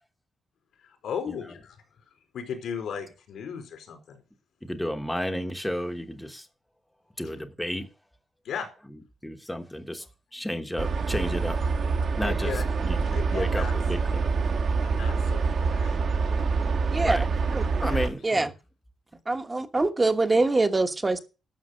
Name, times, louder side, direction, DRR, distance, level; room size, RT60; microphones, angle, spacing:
voice 1, 1.0-1.8 2.3-4.2 8.4-8.7 12.1-12.7 13.0-13.7 14.8-16.2 17.9-18.1, left 7 dB, 80° left, 4.3 m, -36 dB
voice 2, 4.6-6.5 7.2-7.9 9.2-10.0 10.3-11.6 12.2-13.1 13.3-14.3 17.0-17.3 17.8-18.5, equal, 5° left, 1.1 m, -32 dB
sound 1, 10.8-18.1, right 4 dB, 55° right, 1.6 m, -26 dB
voice 3, 19.3-21.2, right 2 dB, 20° right, 1.2 m, -24 dB
12.0 x 7.4 x 6.4 m
wide cardioid pair, 140°, 0 cm